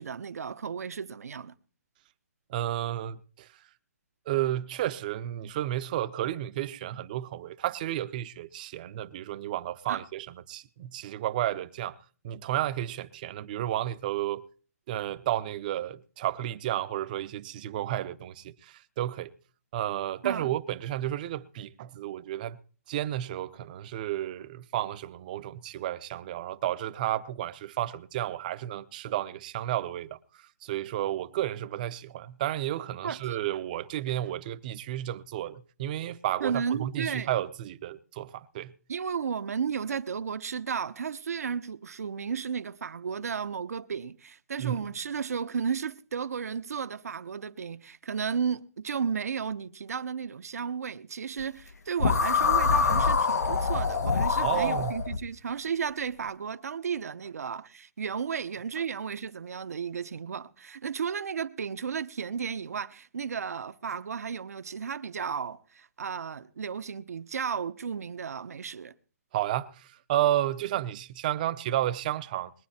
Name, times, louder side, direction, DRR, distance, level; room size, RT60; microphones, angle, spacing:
voice 1, 0.0-1.5 9.9-10.0 20.2-20.5 33.0-33.4 36.4-37.3 38.9-68.9, right 6 dB, 75° right, 1.0 m, -34 dB
voice 2, 2.5-3.5 4.3-12.0 12.2-14.5 14.9-19.3 19.7-22.6 22.9-30.2 30.6-38.7 44.6-44.8 54.4-55.0 69.3-72.5, right 13 dB, 30° right, 0.7 m, -32 dB
sound 1, 52.0-55.2, left 5 dB, 80° left, 1.6 m, -25 dB
21.5 x 9.5 x 4.4 m
hypercardioid pair, 155°, 9 cm